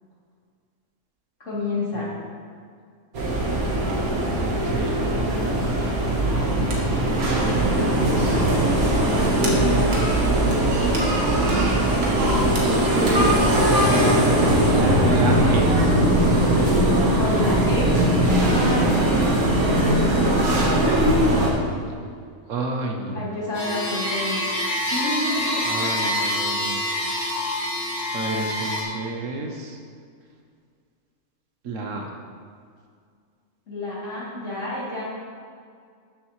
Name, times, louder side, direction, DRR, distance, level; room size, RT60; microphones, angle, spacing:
voice 1, 1.4-2.1 5.0-5.7 8.8-10.1 17.1-19.2 19.6-20.6 23.1-24.4 24.9-25.9 33.7-35.0, left 2 dB, 60° left, -9 dB, 3.2 m, -30 dB
sound 1, 3.1-21.5, right 1 dB, 90° right, 1.9 m, -20 dB
voice 2, 4.4-5.1 7.0-8.5 12.4-13.6 14.4-15.7 18.8-19.1 22.5-23.3 25.7-26.8 28.1-29.8 31.6-32.1, right 2 dB, 65° right, 2 dB, 1.2 m, -31 dB
sound 2, 23.5-28.8, left 1 dB, 25° left, 2.3 m, -26 dB
13.0 x 7.0 x 3.1 m, 2.1 s
omnidirectional pair, 1.5 m